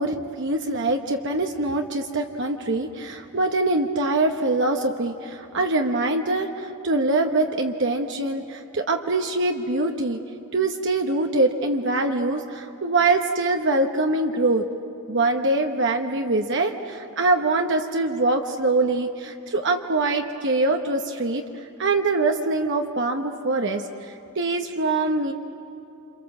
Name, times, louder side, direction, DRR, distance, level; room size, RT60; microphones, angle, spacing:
voice 1, 0.0-10.2 10.5-14.6 15.1-25.3, right 2 dB, 55° right, 4 dB, 1.1 m, -24 dB
28.5 x 27.5 x 7.4 m, 2.9 s
head